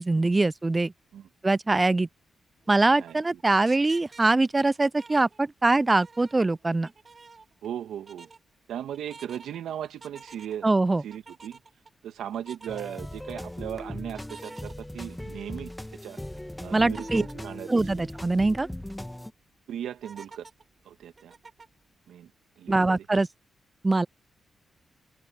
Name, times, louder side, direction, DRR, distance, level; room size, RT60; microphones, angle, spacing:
voice 1, 0.0-0.9 1.4-2.1 2.7-6.9 10.6-11.0 16.7-17.2 17.7-18.7 22.7-23.3 23.8-24.1, right 2 dB, 25° right, 0.4 m, -23 dB
sound 1, 2.6-5.8 6.0-7.8 8.1-8.4 8.9-9.6 10.0-10.7 11.1-11.9 12.3-12.8 14.1-15.3 15.8-15.9 16.9-17.4 17.9-18.0 18.2-18.3 18.8-19.2 20.0-21.8, right 4 dB, 45° right, 3.0 m, -49 dB
voice 2, 7.6-8.3 8.7-10.7 11.0-11.6 12.0-15.7 16.0-16.2 16.6-18.1 19.7-20.5 20.9-21.3 22.1-22.3 22.6-23.0, right 10 dB, 85° right, 2.4 m, -37 dB
sound 2, 12.7-19.3, left 1 dB, 10° left, 1.5 m, -39 dB
open air
supercardioid pair, 55°, 0 cm